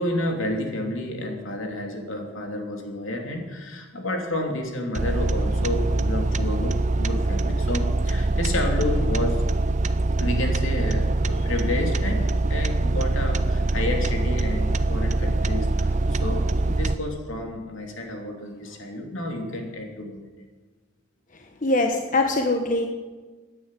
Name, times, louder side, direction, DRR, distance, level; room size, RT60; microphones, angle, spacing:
voice 1, 0.0-9.4 10.2-20.2, left 1 dB, 75° left, 2 dB, 3.0 m, -30 dB
sound 1, 4.9-17.0, right 2 dB, 35° right, 0.6 m, -23 dB
voice 2, 21.6-22.9, left 2 dB, 40° left, 3 dB, 1.2 m, -22 dB
14.5 x 10.0 x 9.1 m, 1.3 s
head